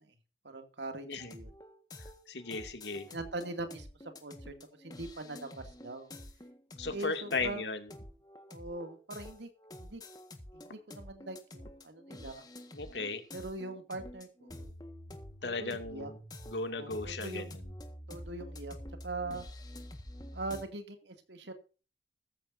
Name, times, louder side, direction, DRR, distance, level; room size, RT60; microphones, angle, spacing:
voice 1, 0.4-1.5 3.1-6.1 6.9-7.6 8.5-9.5 9.8-10.0 10.5-12.4 13.3-14.7 15.4-16.1 16.6-17.5 18.1-18.8 19.0-19.5 20.3-21.5, right 2 dB, 85° right, 6 dB, 2.5 m, -42 dB
sound 1, 1.2-20.6, left 1 dB, 20° left, 1.6 m, -48 dB
voice 2, 2.3-3.1 6.8-7.9 12.7-13.2 15.4-16.2 16.5-17.6, left 3 dB, 85° left, 6 dB, 2.5 m, -36 dB
15.0 x 14.5 x 2.7 m, 0.35 s
head